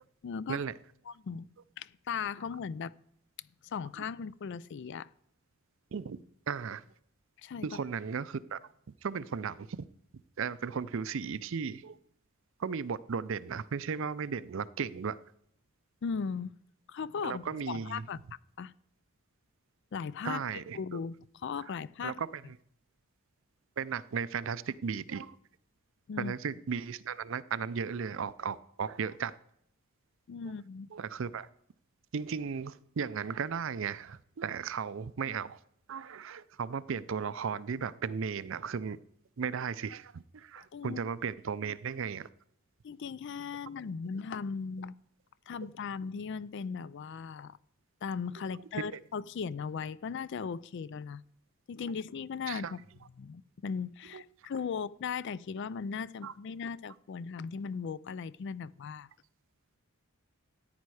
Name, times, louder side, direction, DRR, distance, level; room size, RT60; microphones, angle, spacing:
voice 1, 0.2-0.6 1.1-1.5 1.8-2.9 3.6-5.1 7.4-7.8 16.0-16.5 16.9-18.2 18.6-18.7 19.9-20.4 20.7-22.2 26.1-26.3 30.3-30.9 40.6-41.0 42.8-44.9 45.5-47.6 48.0-51.2 51.7-52.8 53.2-59.1, left 6 dB, 55° left, 0.3 m, -38 dB
voice 2, 5.9-6.8 7.6-8.6 9.0-9.8 10.4-12.0 12.6-15.2 17.2-18.1 20.2-21.0 22.0-22.6 23.8-25.4 26.2-29.3 30.9-31.5 32.1-35.6 35.9-39.0 39.4-42.3 48.9-49.0 52.5-52.7 54.1-54.2 56.2-56.3, right 6 dB, 60° right, 0.5 m, -35 dB
14.5 x 9.4 x 4.8 m
head